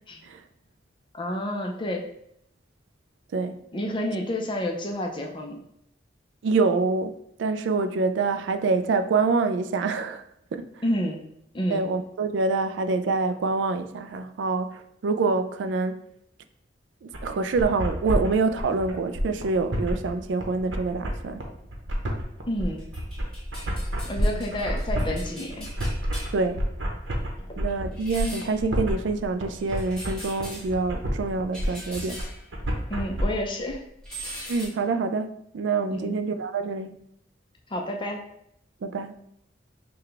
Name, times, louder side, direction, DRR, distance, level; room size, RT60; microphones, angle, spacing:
voice 1, 1.1-2.1 3.7-5.6 10.8-11.2 11.5-11.8 22.5-22.9 24.1-25.7 27.4-27.5 32.9-33.8 35.9-36.2 37.7-38.2, equal, 25° left, 0.5 m, -29 dB
voice 2, 3.3-3.6 6.4-10.2 10.5-10.7 11.7-16.0 17.0-21.4 24.2-24.4 26.3-26.6 27.6-32.2 34.5-37.0 38.8-39.2, right 4 dB, 75° right, 0.3 m, -26 dB
sound 1, 17.1-33.2, equal, 90° right, 0.9 m, -30 dB
sound 2, 22.6-33.4 33.7-34.7, equal, 5° left, 1.4 m, -39 dB
5.7 x 2.3 x 3.3 m
head